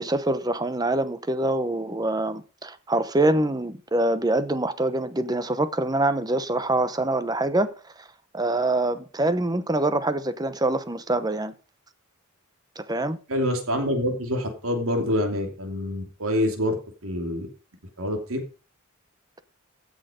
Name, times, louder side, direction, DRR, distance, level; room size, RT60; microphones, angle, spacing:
voice 1, 0.0-7.7 8.3-11.5 12.8-13.2, right 2 dB, 20° right, 0.8 m, -25 dB
voice 2, 13.3-16.8 17.0-17.5 18.0-18.4, equal, 80° right, 2.9 m, -26 dB
15.5 x 6.4 x 5.1 m
head